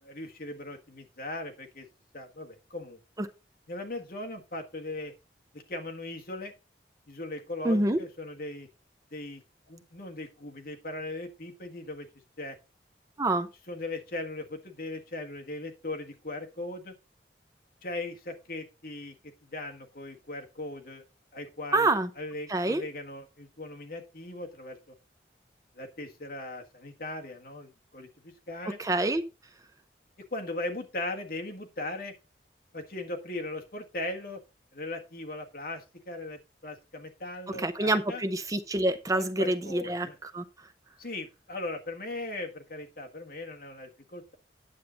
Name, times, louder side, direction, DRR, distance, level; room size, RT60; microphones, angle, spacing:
voice 1, 0.0-1.9 2.1-3.0 3.7-5.1 5.5-6.5 7.1-8.7 9.1-12.1 12.4-12.6 13.7-16.9 17.8-21.0 21.3-21.9 22.2-24.9 25.7-28.8 30.3-32.1 32.7-34.4 34.7-38.2 39.1-40.2 41.0-44.4, left 2 dB, 50° left, 1.5 m, -39 dB
voice 2, 7.6-8.0 13.2-13.5 21.7-22.1 22.5-22.8 28.8-29.2 37.5-40.4, right 2 dB, 20° right, 0.5 m, -27 dB
9.7 x 7.4 x 3.8 m
head